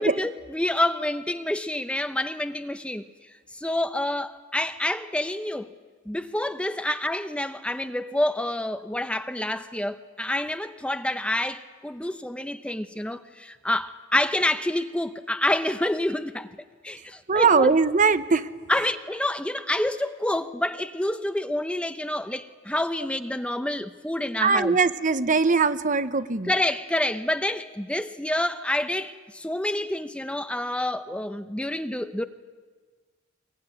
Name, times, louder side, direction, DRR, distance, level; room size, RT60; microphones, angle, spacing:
voice 1, 0.0-3.0 3.5-5.7 6.1-16.5 16.8-17.7 18.7-24.8 26.5-32.2, left 1 dB, 5° left, 0.7 m, -28 dB
voice 2, 17.3-18.5 24.4-26.5, right 4 dB, 40° right, 0.9 m, -21 dB
23.5 x 22.0 x 9.8 m
head